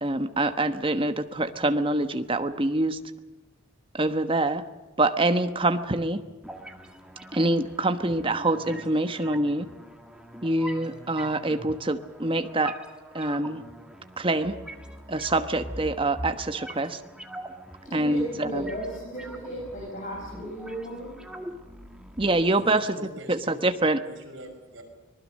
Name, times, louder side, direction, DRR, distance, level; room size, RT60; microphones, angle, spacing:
voice 1, 0.0-3.0 3.9-4.6 5.0-6.2 7.3-9.7 10.4-12.8 13.1-13.6 14.2-14.6 15.1-17.0 17.9-18.7 22.2-23.0 23.3-24.0, right 2 dB, 25° right, 9 dB, 1.2 m, -25 dB
sound 1, 6.4-22.4, right 1 dB, 5° right, 1.6 m, -43 dB
voice 2, 17.8-21.1, right 1 dB, 40° left, -3 dB, 7.5 m, -35 dB
voice 3, 22.4-23.7 24.0-24.8, right 1 dB, 60° right, 2 dB, 5.8 m, -44 dB
25.0 x 19.5 x 6.5 m, 1.2 s
head